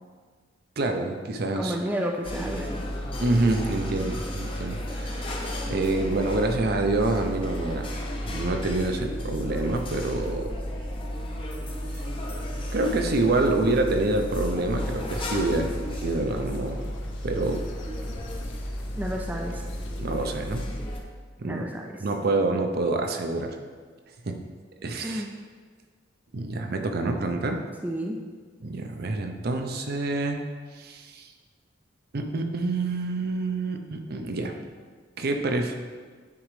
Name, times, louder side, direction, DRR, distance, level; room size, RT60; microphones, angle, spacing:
voice 1, 0.8-1.8 3.2-5.4 5.7-10.7 12.7-16.8 17.2-17.6 20.0-20.7 21.4-21.7 22.0-23.6 24.2-24.4 24.8-25.2 26.3-27.6 28.6-30.4 30.7-31.3 32.1-34.6 35.2-35.8, right 2 dB, 55° right, 4 dB, 0.6 m, -27 dB
voice 2, 1.6-2.8 19.0-19.6 21.4-21.9 25.0-25.3 27.8-28.2, equal, 10° right, 0 dB, 0.4 m, -31 dB
sound 1, 2.2-21.0, equal, 30° left, 0.7 m, -33 dB
sound 2, 14.7-20.0, left 2 dB, 70° left, 0.6 m, -46 dB
9.4 x 3.8 x 3.2 m, 1.5 s
head